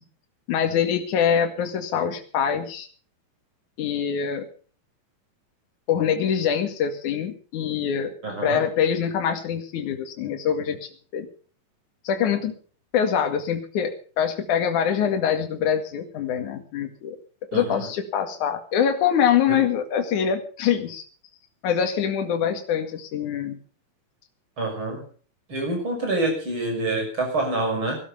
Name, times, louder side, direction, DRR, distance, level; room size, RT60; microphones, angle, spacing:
voice 1, 0.5-2.9 3.8-4.5 5.9-8.1 8.4-11.3 12.0-12.5 12.9-17.2 17.5-21.0 21.6-23.6, left 8 dB, 60° left, 5 dB, 3.3 m, -24 dB
voice 2, 8.2-8.6 17.5-17.9 19.5-19.6 24.6-25.0 25.5-28.0, right 2 dB, 35° right, 2 dB, 7.0 m, -26 dB
18.5 x 12.5 x 5.6 m, 0.42 s
omnidirectional pair, 4.1 m